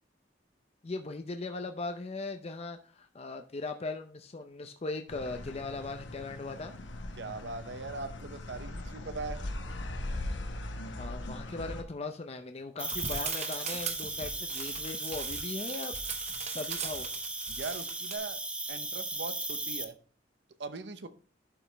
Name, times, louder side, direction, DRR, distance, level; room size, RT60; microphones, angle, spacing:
voice 1, 0.8-6.7 10.9-15.9 16.5-17.1, left 3 dB, 35° left, 6 dB, 0.6 m, -39 dB
sound 1, 5.1-11.8, left 1 dB, 80° left, 1.1 m, -40 dB
voice 2, 7.2-9.4 17.5-18.4 18.7-20.0 20.6-21.1, right 3 dB, 65° right, 11 dB, 0.8 m, -40 dB
Cricket, 12.8-19.8, right 2 dB, 5° right, 0.6 m, -37 dB
sound 2, 12.8-18.2, right 6 dB, 35° right, 0.9 m, -40 dB
11.0 x 5.0 x 3.3 m, 0.42 s
head